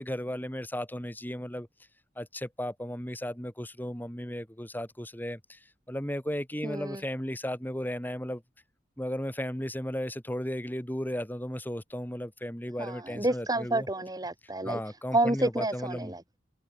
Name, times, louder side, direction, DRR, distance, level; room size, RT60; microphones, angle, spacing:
voice 1, 0.0-1.7 2.2-5.6 5.9-8.4 9.0-13.9 14.6-16.1, equal, 10° left, 5.6 m, -35 dB
voice 2, 6.6-7.0 12.8-14.8 15.1-16.4, right 2 dB, 20° right, 3.4 m, -29 dB
head